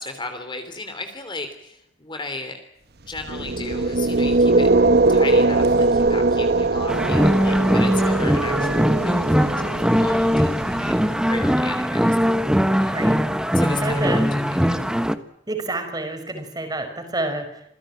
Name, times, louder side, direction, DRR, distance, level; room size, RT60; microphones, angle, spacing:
voice 1, 0.0-2.6 3.0-4.7 5.1-12.5 12.7-13.1 13.5-14.8, left 3 dB, 25° left, 7 dB, 3.2 m, -35 dB
sound 1, 3.2-11.3, right 3 dB, 55° right, 1.2 m, -21 dB
sound 2, 6.9-15.2, equal, 5° right, 1.2 m, -20 dB
voice 2, 13.8-14.3 15.5-17.6, right 2 dB, 20° right, 6 dB, 5.3 m, -28 dB
27.0 x 17.0 x 9.0 m, 0.77 s
head